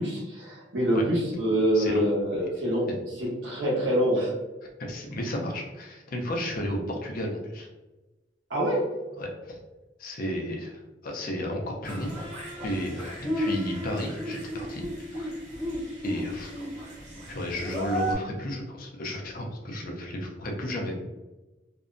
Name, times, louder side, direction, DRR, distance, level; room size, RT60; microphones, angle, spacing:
voice 1, 0.0-2.9 3.2-4.3 8.5-8.8, equal, 90° right, -4 dB, 1.0 m, -25 dB
voice 2, 2.3-2.6 4.8-7.7 9.2-9.6 10.0-12.3 12.6-15.4 16.0-16.5 17.3-20.9, equal, 50° left, 0 dB, 0.5 m, -33 dB
sound 1, 11.8-18.1, equal, 40° right, 0.8 m, -34 dB
2.6 x 2.1 x 2.5 m, 1.1 s
head